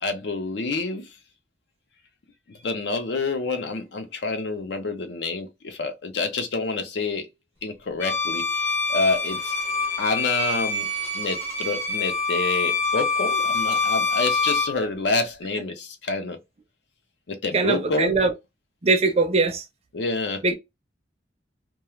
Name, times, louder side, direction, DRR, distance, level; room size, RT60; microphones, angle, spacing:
voice 1, 0.0-1.1 2.5-7.3 7.6-9.5 10.0-10.9 11.1-16.4 17.3-18.2 19.9-20.4, left 3 dB, 65° left, 0.5 m, -28 dB
Bowed string instrument, 8.0-14.8, left 3 dB, 15° left, 0.5 m, -25 dB
voice 2, 17.5-18.3 18.8-19.6 20.4-20.5, right 3 dB, 35° right, 0.5 m, -21 dB
2.3 x 2.2 x 3.0 m
head